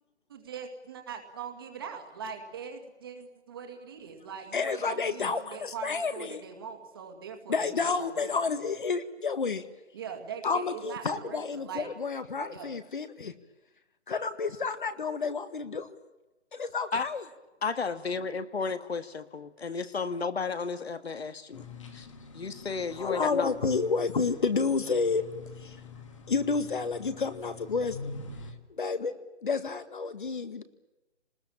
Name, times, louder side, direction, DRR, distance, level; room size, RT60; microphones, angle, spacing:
voice 1, 0.3-8.3 9.9-12.0 12.5-12.7, right 7 dB, 20° right, 5 dB, 2.2 m, -42 dB
voice 2, 4.5-6.4 7.5-9.6 10.4-13.3 14.1-16.0 16.5-17.2 23.0-25.2 26.3-28.1 28.7-29.1 29.4-30.6, left 4 dB, 45° left, 11 dB, 1.9 m, -30 dB
voice 3, 17.6-21.7 21.9-22.1 22.3-23.6, left 4 dB, 60° left, 12 dB, 2.0 m, -33 dB
sound 1, 21.5-28.5, left 4 dB, 25° left, 2.2 m, -45 dB
27.0 x 20.5 x 8.8 m, 1.0 s
hypercardioid pair, 175°, 35 cm